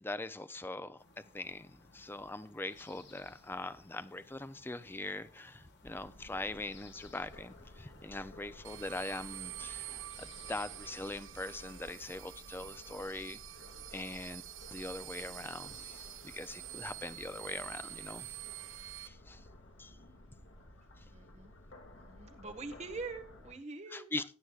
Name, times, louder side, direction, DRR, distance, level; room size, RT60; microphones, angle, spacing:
voice 1, 0.0-1.0 1.3-13.4 13.9-14.4 14.7-18.4 19.1-19.4 19.8-19.9 23.9-24.2, left 2 dB, 10° left, 0.5 m, -42 dB
sound 1, 1.0-11.2, left 3 dB, 60° left, 1.6 m, -61 dB
sound 2, 5.8-23.5, left 1 dB, 80° left, 2.0 m, -55 dB
sound 3, 8.6-19.1, right 16 dB, 85° right, 0.7 m, -47 dB
voice 2, 21.1-21.5 21.9-24.1, right 3 dB, 35° right, 1.6 m, -44 dB
17.5 x 9.4 x 2.4 m
head